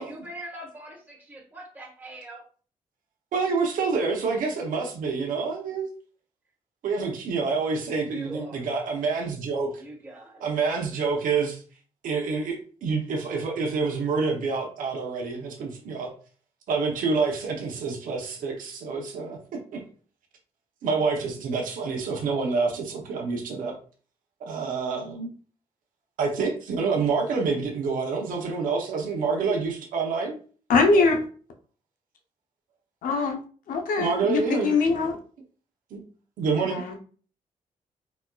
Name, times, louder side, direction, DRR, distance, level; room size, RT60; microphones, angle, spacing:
voice 1, 0.0-2.4 8.1-8.6 9.7-10.5, right 1 dB, 15° right, -3 dB, 1.2 m, -42 dB
voice 2, 3.3-5.9 6.8-9.8 10.4-11.6 12.0-16.1 16.7-19.4 19.7-19.8 20.8-23.7 24.4-25.3 26.2-30.3 34.0-34.8 35.9-36.0 36.4-36.8, right 4 dB, 85° right, 1 dB, 0.7 m, -27 dB
voice 3, 30.7-31.2 33.0-33.4 33.7-35.1 36.6-37.0, left 4 dB, 85° left, 4 dB, 0.6 m, -22 dB
4.1 x 2.2 x 2.2 m, 0.41 s
cardioid pair, 65°, 14 cm